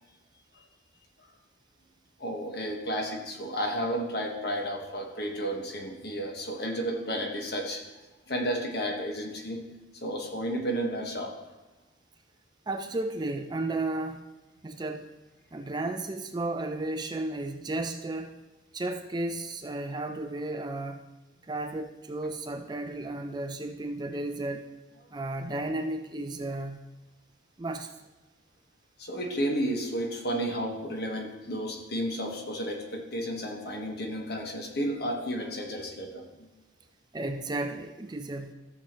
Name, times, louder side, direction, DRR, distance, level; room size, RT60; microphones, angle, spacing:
voice 1, 2.2-7.8 8.3-9.6 10.0-11.4 29.0-36.5, equal, 55° left, 2 dB, 1.4 m, -32 dB
voice 2, 12.7-14.3 14.6-15.1 15.5-18.3 18.7-21.0 21.4-24.6 25.1-26.8 27.6-27.9 37.1-38.5, right 2 dB, 20° right, 6 dB, 0.4 m, -33 dB
13.0 x 7.0 x 3.0 m, 1.1 s
head